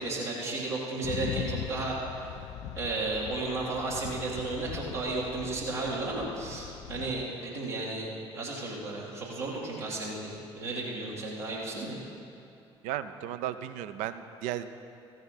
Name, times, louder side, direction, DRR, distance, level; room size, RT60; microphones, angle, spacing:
voice 1, 0.0-2.3 2.8-12.0, right 2 dB, 80° right, -8 dB, 2.2 m, -34 dB
sound 1, 1.0-7.3, left 11 dB, 55° left, 0.4 m, -40 dB
voice 2, 12.8-14.7, right 11 dB, 60° right, 11 dB, 0.5 m, -35 dB
14.5 x 7.8 x 5.7 m, 2.6 s
figure-of-eight pair, 50°, 15 cm